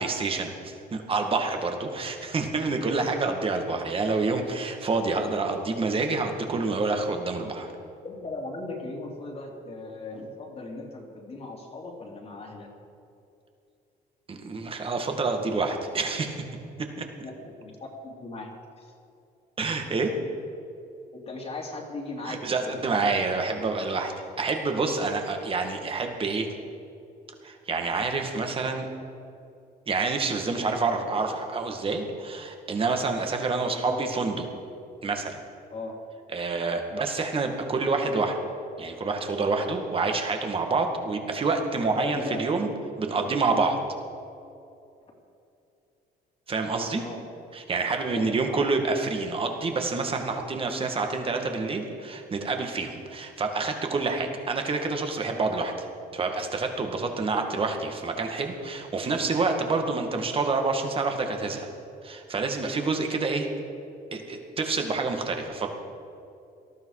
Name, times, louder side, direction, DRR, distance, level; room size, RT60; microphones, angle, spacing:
voice 1, 0.0-7.7 14.3-16.4 16.8-17.1 19.6-20.2 22.3-24.1 24.4-26.5 27.4-28.9 29.9-34.5 35.0-35.4 36.3-38.4 38.8-42.7 43.0-43.8 46.5-47.0 47.5-55.9 56.1-61.7 62.0-63.5 64.1-65.7, right 3 dB, 35° right, 4 dB, 2.1 m, -28 dB
voice 2, 8.0-12.7 17.2-17.7 18.0-18.9 21.1-22.8 33.6-34.1 35.7-35.9 42.0-42.4 42.8-43.3 47.0-47.3 48.1-48.6, left 2 dB, 35° left, 0 dB, 3.0 m, -38 dB
18.5 x 13.0 x 4.9 m, 2.6 s
cardioid pair, 110°, 17 cm